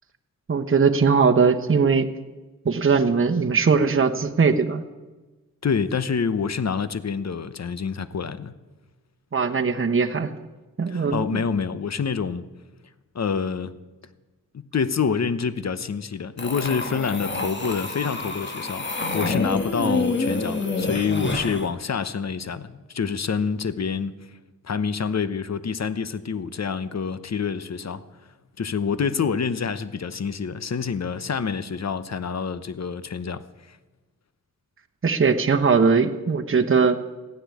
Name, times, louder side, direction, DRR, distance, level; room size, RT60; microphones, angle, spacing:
voice 1, 0.5-2.1 2.6-4.8 9.3-10.3 10.8-11.4 19.8-20.0 35.0-37.0, right 5 dB, 40° right, 1.1 m, -20 dB
voice 2, 5.6-8.5 10.9-12.4 13.1-13.7 14.5-24.2 24.6-28.0 28.6-33.8, left 6 dB, 50° left, 0.9 m, -27 dB
sound 1, 16.4-21.7, left 3 dB, 35° left, 1.7 m, -28 dB
15.0 x 10.0 x 8.4 m
cardioid pair, 75°, 34 cm